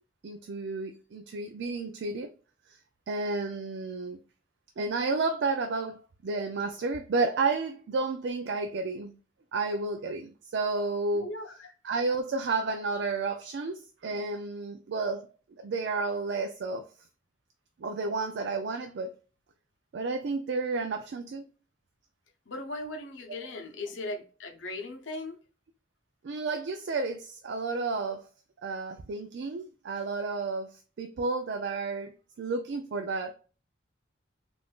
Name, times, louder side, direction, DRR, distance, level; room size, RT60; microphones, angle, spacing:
voice 1, 0.2-2.3 2.7-2.8 3.1-4.2 4.8-9.2 9.5-11.3 11.8-15.3 15.6-16.9 17.8-19.1 19.9-21.5 26.2-28.3 28.6-32.1 32.4-33.3, right 3 dB, 60° right, 0.4 m, -31 dB
voice 2, 11.2-11.7 22.5-25.4, left 2 dB, 75° left, 0.8 m, -38 dB
3.5 x 2.5 x 2.3 m
head